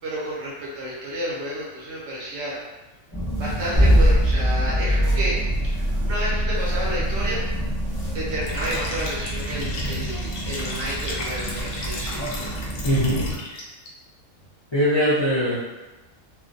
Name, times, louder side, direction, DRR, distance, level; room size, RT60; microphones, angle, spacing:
voice 1, 0.0-2.6 3.4-5.4 5.6-7.5 8.1-12.4, right 1 dB, 65° right, -5 dB, 0.9 m, -31 dB
sound 1, 3.1-13.4, right 1 dB, 10° left, 0.9 m, -30 dB
sound 2, 3.8-9.9, equal, 25° right, 0.5 m, -21 dB
Liquid, 8.4-13.9, left 2 dB, 65° left, 0.8 m, -35 dB
voice 2, 12.8-13.2 14.7-15.5, equal, 40° left, -12 dB, 0.3 m, -20 dB
2.5 x 2.1 x 2.6 m, 1.1 s
omnidirectional pair, 1.5 m